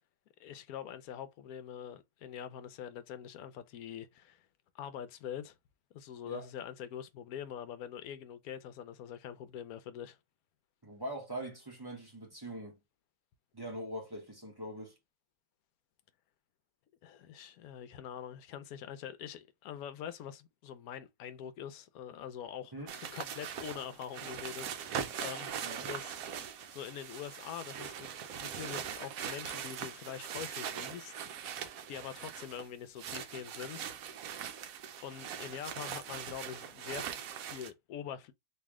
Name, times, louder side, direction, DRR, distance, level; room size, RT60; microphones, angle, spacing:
voice 1, 0.4-4.5 4.7-5.5 5.9-10.2 17.0-28.1 28.4-31.2 31.9-33.9 35.0-38.3, left 9 dB, 70° left, 1.0 m, -44 dB
voice 2, 10.8-12.8 13.5-15.0 22.7-22.9 25.6-25.9, right 1 dB, 20° right, 0.6 m, -42 dB
sound 1, 22.9-32.7 33.0-37.7, right 8 dB, 70° right, 0.9 m, -41 dB
3.2 x 2.8 x 3.5 m
omnidirectional pair, 1.8 m